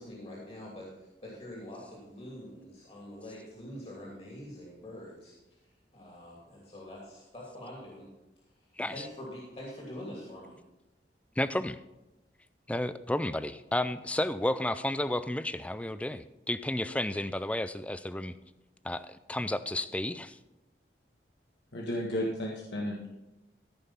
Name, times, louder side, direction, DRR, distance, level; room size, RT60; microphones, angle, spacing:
voice 1, 0.0-5.3 5.9-8.1 8.8-10.6, left 1 dB, 35° left, 2.7 m, -45 dB
voice 2, 11.4-11.8 12.7-18.3 18.8-20.4, left 1 dB, 5° left, 0.4 m, -32 dB
voice 3, 21.7-23.1, equal, 75° left, 1.6 m, -33 dB
14.5 x 5.6 x 5.7 m
head